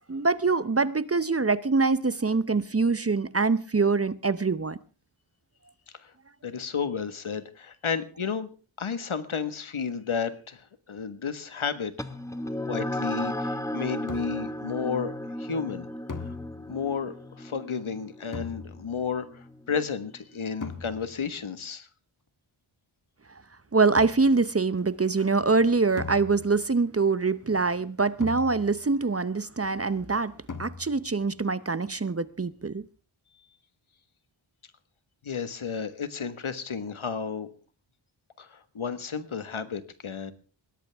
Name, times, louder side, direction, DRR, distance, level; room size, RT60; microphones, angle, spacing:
voice 1, 0.1-4.8 23.3-23.4 23.7-30.3 30.6-32.8, right 4 dB, 30° right, 0.7 m, -24 dB
voice 2, 6.4-8.5 8.8-12.1 12.7-15.9 16.2-16.3 16.7-21.9 35.2-37.5 38.4-40.3, left 6 dB, 75° left, 1.6 m, -32 dB
sound 1, 12.0-20.8, left 1 dB, 5° left, 1.2 m, -35 dB
sound 2, 14.1-14.6 16.1-17.0 18.3-19.1 20.6-21.3 24.0-24.5 26.0-26.8 28.2-29.0 30.5-31.2, left 5 dB, 40° left, 1.5 m, -40 dB
21.0 x 17.0 x 3.5 m
wide cardioid pair, 75°, 50 cm